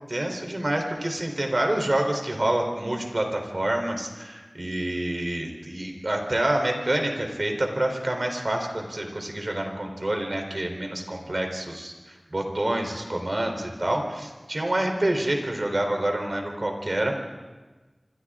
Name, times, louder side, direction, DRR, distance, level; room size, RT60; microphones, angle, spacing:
voice 1, 0.1-17.1, right 1 dB, 55° right, 3 dB, 3.7 m, -27 dB
29.0 x 25.0 x 3.8 m, 1.3 s
wide cardioid pair, 45°, 0 cm